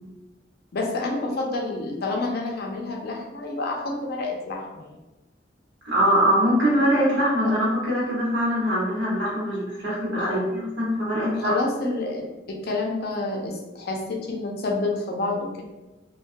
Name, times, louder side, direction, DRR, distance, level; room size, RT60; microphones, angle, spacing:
voice 1, 0.7-4.9 10.2-10.4 11.3-15.6, left 2 dB, 60° left, 0 dB, 0.5 m, -28 dB
voice 2, 5.8-11.6, equal, 80° right, -6 dB, 1.1 m, -22 dB
2.2 x 2.2 x 2.6 m, 1.1 s
head